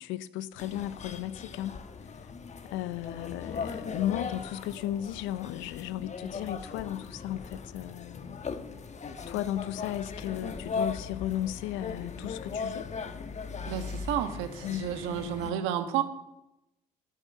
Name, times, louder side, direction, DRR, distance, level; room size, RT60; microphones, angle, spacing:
voice 1, 0.0-1.8 2.6-8.4 9.3-12.9 14.6-15.7, left 13 dB, 70° left, 0.6 m, -35 dB
sound 1, 0.6-15.5, left 5 dB, 35° left, 1.1 m, -39 dB
voice 2, 13.6-16.0, right 10 dB, 75° right, 1.3 m, -31 dB
11.0 x 8.2 x 7.3 m
hypercardioid pair, 60°, 21 cm